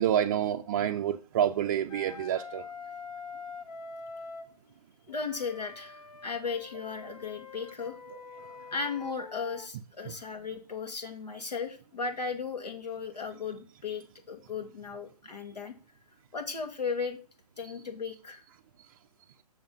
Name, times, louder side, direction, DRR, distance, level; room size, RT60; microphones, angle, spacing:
voice 1, 0.0-2.6 8.1-8.5 10.1-10.2, right 10 dB, 30° right, 0.4 m, -28 dB
Wind instrument woodwind instrument, 1.9-4.5 5.1-9.7, left 5 dB, 65° left, 1.4 m, -45 dB
voice 2, 5.1-8.0 8.7-15.7 16.3-17.2 17.6-18.4, left 5 dB, 85° left, 2.0 m, -36 dB
7.1 x 6.2 x 5.3 m
hypercardioid pair, 140°, 20 cm